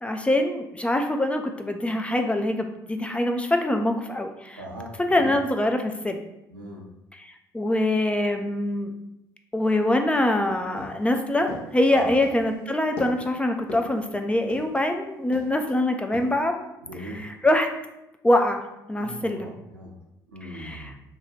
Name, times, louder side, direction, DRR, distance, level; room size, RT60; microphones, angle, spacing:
voice 1, 0.0-4.6 5.1-6.2 7.1-7.3 7.5-8.9 9.5-16.6 17.0-17.7 18.2-19.5 20.4-20.9, left 1 dB, 10° left, 5 dB, 0.3 m, -24 dB
voice 2, 4.6-5.3 6.5-6.8 10.7-10.9 11.9-12.1 16.8-17.2 19.0-19.9 20.3-20.9, right 1 dB, 85° right, -4 dB, 0.6 m, -38 dB
sound 1, 10.7-14.9 15.3-15.7 16.1-16.3, left 2 dB, 65° left, 0.7 m, -40 dB
2.6 x 2.3 x 3.0 m, 0.90 s
figure-of-eight pair, 50°, 11 cm